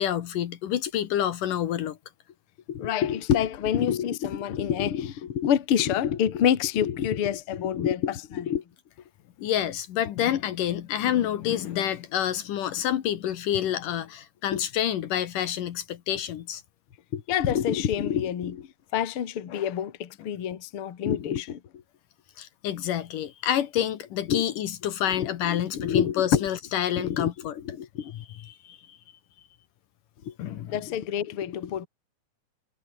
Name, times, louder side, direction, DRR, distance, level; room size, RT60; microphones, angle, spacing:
voice 1, 0.0-2.0 9.4-16.6 22.4-27.6 28.5-29.0 30.4-30.8, left 11 dB, 70° left, 2.8 m, -28 dB
voice 2, 2.7-8.6 14.5-14.6 17.1-18.7 18.9-21.6 24.3-24.5 25.1-26.5 27.0-28.1 30.2-30.3 30.7-31.9, left 9 dB, 45° left, 2.2 m, -27 dB
omnidirectional pair, 4.1 m